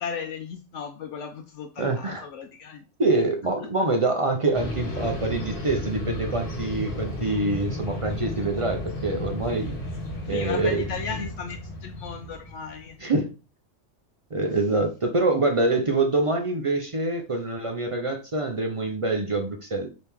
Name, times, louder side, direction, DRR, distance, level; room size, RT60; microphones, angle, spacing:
voice 1, 0.0-2.8 10.2-13.0, left 6 dB, 75° left, 5 dB, 0.9 m, -35 dB
voice 2, 1.8-2.3 3.0-9.7 10.3-10.9 13.0-13.3 14.3-19.9, right 2 dB, 45° right, 3 dB, 0.4 m, -25 dB
sound 1, 4.5-12.9, left 1 dB, 50° left, 1.2 m, -33 dB
4.4 x 3.0 x 3.5 m, 0.33 s
omnidirectional pair, 1.3 m